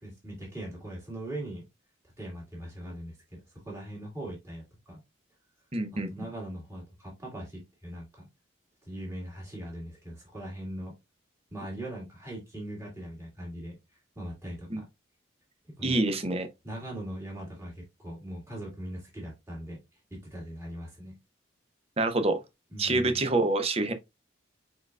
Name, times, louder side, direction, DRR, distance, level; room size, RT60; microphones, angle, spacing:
voice 1, 0.0-1.6 2.2-5.0 5.9-8.3 8.8-10.9 11.5-13.8 14.2-14.8 15.6-16.0 16.6-19.8 20.1-21.1 22.7-23.2, right 1 dB, 15° right, 2.0 m, -40 dB
voice 2, 5.7-6.1 14.7-14.8 15.8-16.5 22.0-22.4 22.8-23.9, right 2 dB, 30° right, 0.6 m, -26 dB
4.7 x 4.4 x 2.3 m
head